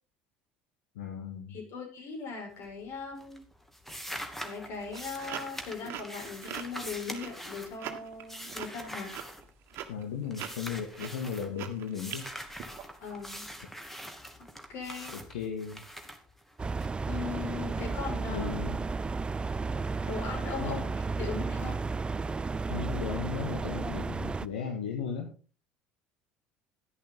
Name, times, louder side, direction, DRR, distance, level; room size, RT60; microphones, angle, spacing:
voice 1, 1.0-1.6 9.9-12.3 15.1-15.8 18.2-18.8 20.6-20.8 22.6-25.3, left 6 dB, 75° left, 2 dB, 2.0 m, -36 dB
voice 2, 1.5-3.4 4.4-9.1 13.0-13.4 14.4-15.2 17.1-18.5 20.0-20.9 21.2-21.8, left 5 dB, 55° left, 2 dB, 5.8 m, -39 dB
sound 1, 2.5-2.9 3.2-9.9 10.3-11.5 11.9-16.9, equal, 5° left, 2.3 m, -44 dB
sound 2, 4.7-13.3, right 10 dB, 55° right, 1.7 m, -43 dB
sound 3, 16.6-24.5, right 4 dB, 20° right, 0.5 m, -33 dB
11.0 x 11.0 x 3.9 m, 0.36 s
hypercardioid pair, 65°, 5 cm